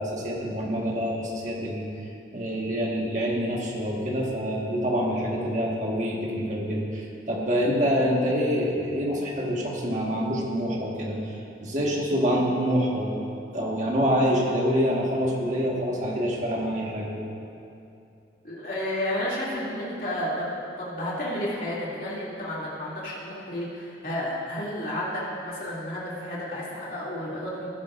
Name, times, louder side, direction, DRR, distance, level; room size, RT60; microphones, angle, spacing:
voice 1, 0.0-1.9 2.3-13.3 13.5-17.2, equal, 40° right, -3 dB, 1.6 m, -26 dB
voice 2, 18.4-27.7, left 1 dB, 50° left, -7 dB, 2.7 m, -31 dB
17.5 x 10.0 x 2.6 m, 2.7 s
head